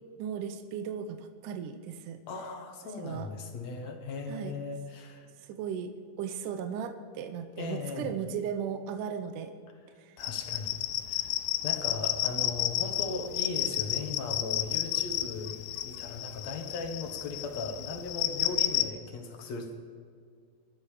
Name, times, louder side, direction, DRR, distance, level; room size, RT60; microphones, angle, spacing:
voice 1, 0.2-2.2 3.0-3.3 4.3-4.5 5.4-9.5 10.1-10.2, right 7 dB, 75° right, 8 dB, 2.0 m, -36 dB
voice 2, 2.3-5.3 7.6-8.1 10.2-10.8 11.1-11.3 11.6-19.9, left 3 dB, 60° left, 4 dB, 2.1 m, -38 dB
sound 1, 10.2-18.9, left 14 dB, 80° left, 2.4 m, -32 dB
21.0 x 12.5 x 5.0 m, 2.1 s
omnidirectional pair, 4.6 m